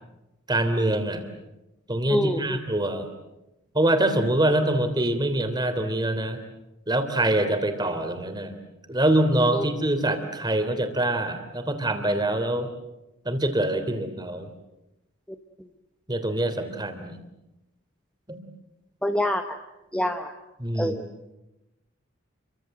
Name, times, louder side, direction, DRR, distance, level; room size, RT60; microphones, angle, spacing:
voice 1, 0.5-1.2 1.9-3.1 3.7-6.4 6.9-8.6 8.9-12.7 13.2-14.5 16.1-17.2 18.3-18.4 20.6-21.0, right 1 dB, 20° right, 7 dB, 3.2 m, -24 dB
voice 2, 2.1-2.6 9.5-9.6 19.0-19.4 19.9-20.3 20.8-21.1, left 1 dB, 5° left, 5 dB, 1.0 m, -25 dB
29.5 x 24.0 x 7.8 m, 0.95 s
head